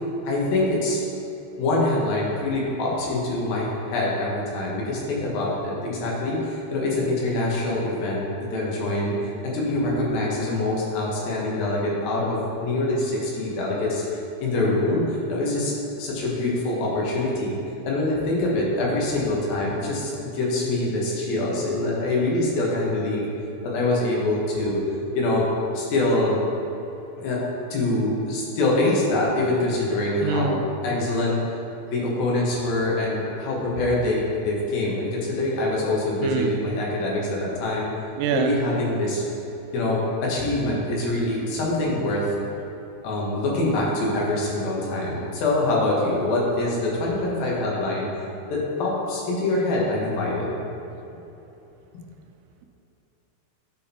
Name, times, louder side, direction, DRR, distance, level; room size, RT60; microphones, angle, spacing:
voice 1, 0.2-1.0 1.6-17.6 17.8-23.3 23.6-24.8 25.2-25.4 25.7-26.4 27.2-27.4 27.7-31.4 31.9-37.9 38.3-39.2 39.7-42.2 43.0-48.1 48.5-50.6 51.9-52.0, left 2 dB, 90° left, -4 dB, 3.2 m, -24 dB
voice 2, 30.2-30.6 36.2-36.6 38.2-38.5, right 6 dB, 85° right, 4 dB, 2.3 m, -25 dB
11.0 x 4.4 x 4.3 m, 3.0 s
omnidirectional pair, 4.1 m